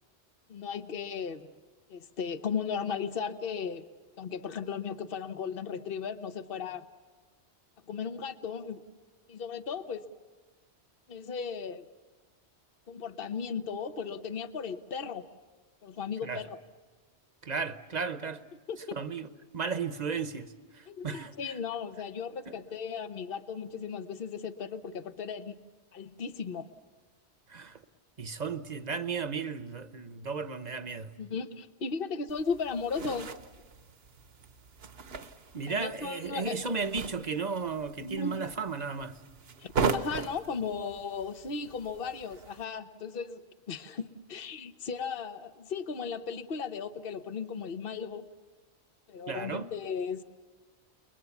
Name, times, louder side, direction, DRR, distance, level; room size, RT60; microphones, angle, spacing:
voice 1, 0.5-1.4 1.9-3.9 4.2-6.8 7.9-8.8 9.3-10.0 11.1-11.8 12.9-15.3 15.8-16.6 18.7-19.0 20.9-25.6 25.9-26.7 31.2-33.3 35.7-36.6 38.0-38.4 39.6-43.4 43.7-48.2 49.1-50.2, left 6 dB, 55° left, 1.2 m, -36 dB
voice 2, 17.4-18.4 19.0-19.3 19.5-21.6 22.5-22.6 27.5-27.8 28.2-31.1 35.5-39.2 49.3-49.7, right 5 dB, 40° right, 1.0 m, -34 dB
sound 1, 32.3-42.6, right 5 dB, 60° right, 1.2 m, -38 dB
30.0 x 21.5 x 7.2 m
omnidirectional pair, 1.2 m